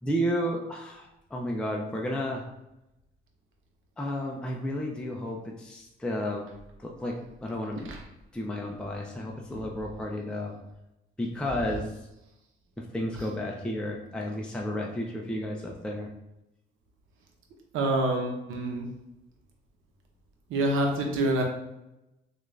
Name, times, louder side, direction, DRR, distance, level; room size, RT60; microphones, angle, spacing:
voice 1, 0.0-2.5 4.0-6.4 6.8-7.2 7.4-7.9 8.3-10.6 11.2-11.9 12.8-16.1, equal, 5° left, -1 dB, 0.5 m, -32 dB
voice 2, 17.7-18.9 20.5-21.4, right 1 dB, 85° right, 2 dB, 0.8 m, -26 dB
3.5 x 2.4 x 3.2 m, 0.90 s
cardioid pair, 90°, 20 cm